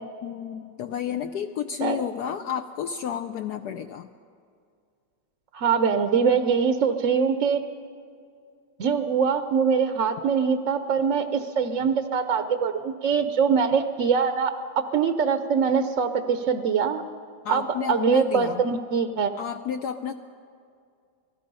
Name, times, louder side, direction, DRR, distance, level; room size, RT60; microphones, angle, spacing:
voice 1, 0.2-4.1 17.4-18.6 19.4-20.1, left 8 dB, 70° left, 7 dB, 1.1 m, -31 dB
voice 2, 5.5-7.6 8.8-17.0 17.5-19.3, right 6 dB, 55° right, 8 dB, 0.9 m, -23 dB
28.0 x 18.5 x 5.4 m, 2.3 s
omnidirectional pair, 2.0 m